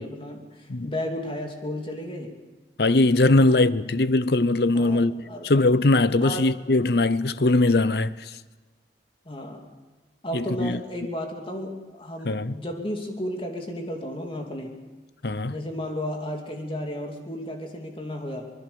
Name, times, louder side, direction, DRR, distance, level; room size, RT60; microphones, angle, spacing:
voice 1, 0.0-2.4 3.3-3.6 4.7-5.5 6.2-6.5 9.2-9.7 10.2-14.7 15.5-18.5, equal, 30° left, 2.7 m, -33 dB
voice 2, 2.8-8.3 10.3-10.8 12.2-12.5 15.2-15.5, left 2 dB, 60° left, 0.8 m, -21 dB
25.0 x 20.5 x 7.0 m
head